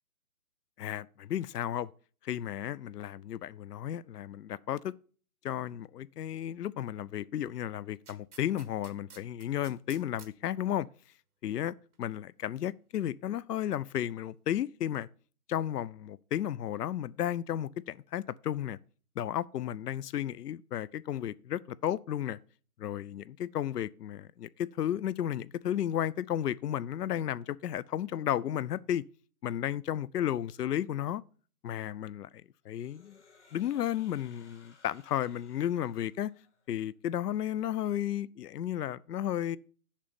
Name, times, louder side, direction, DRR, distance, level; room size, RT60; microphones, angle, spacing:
voice 1, 0.8-1.9 2.2-4.9 5.4-10.9 11.4-15.1 15.5-18.8 19.2-22.4 22.8-29.0 29.4-31.2 31.6-32.3 32.7-33.2 33.5-36.3 36.7-39.6, left 11 dB, 80° left, 0.6 m, -33 dB
sound 1, 8.0-10.3 11.9-12.0, right 6 dB, 70° right, 1.5 m, -52 dB
sound 2, 32.7-36.8, left 4 dB, 50° left, 1.5 m, -62 dB
7.4 x 5.4 x 6.9 m
hypercardioid pair, 180°, 46 cm